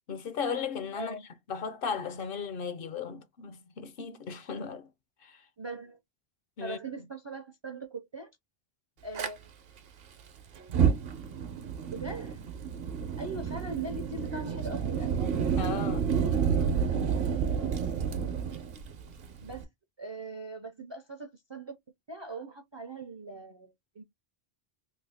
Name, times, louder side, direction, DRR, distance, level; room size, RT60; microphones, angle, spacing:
voice 1, 0.1-1.2 1.5-4.9 5.2-5.4 6.6-6.8 15.6-16.1, left 6 dB, 65° left, 0.8 m, -36 dB
voice 2, 0.9-1.3 5.6-6.0 6.6-8.3 9.0-9.5 11.9-12.4 13.0-15.1 19.4-19.7 20.0-21.8 22.1-24.0, right 3 dB, 40° right, 0.4 m, -41 dB
Fire, 9.1-9.3 10.6-19.6, right 7 dB, 70° right, 0.9 m, -30 dB
3.4 x 2.3 x 3.4 m
omnidirectional pair, 1.1 m